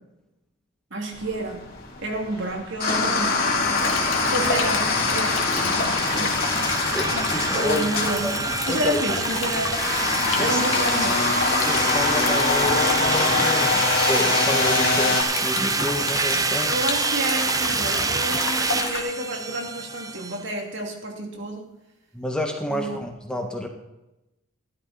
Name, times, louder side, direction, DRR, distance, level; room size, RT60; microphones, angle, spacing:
voice 1, 0.9-3.5 4.2-4.9 5.1-6.5 6.8-9.8 10.4-11.2 16.7-21.7 22.7-23.0, right 2 dB, 60° right, 1 dB, 2.6 m, -30 dB
sound 1, 1.1-15.2, left 3 dB, 45° left, 3.1 m, -24 dB
sound 2, 3.7-20.5, right 4 dB, 15° right, 0.5 m, -27 dB
Stream, 3.8-19.0, left 5 dB, 70° left, 2.0 m, -31 dB
voice 2, 6.9-7.9 8.2-8.3 8.7-9.0 10.4-10.6 11.6-16.8 22.1-23.7, left 1 dB, 5° left, 1 dB, 1.5 m, -29 dB
14.5 x 12.5 x 4.1 m, 0.94 s
head